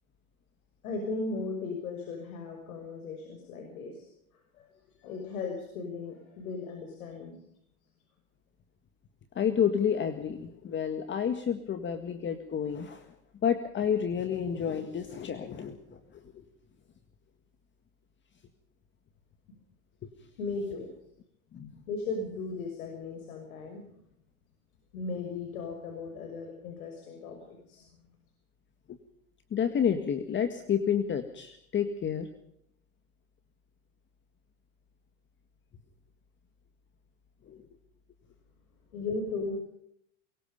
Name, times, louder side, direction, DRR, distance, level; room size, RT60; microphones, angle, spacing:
voice 1, 0.8-4.1 4.6-4.7 5.0-7.4 20.4-20.9 21.9-23.9 24.9-27.8 38.9-39.6, left 3 dB, 80° left, 4 dB, 6.2 m, -36 dB
voice 2, 9.4-13.1 13.4-16.2 21.5-21.7 28.9-29.0 29.5-32.3 37.5-37.7, left 8 dB, 25° left, 8 dB, 1.9 m, -30 dB
23.5 x 22.5 x 5.3 m, 0.72 s
supercardioid pair, 120°, 43 cm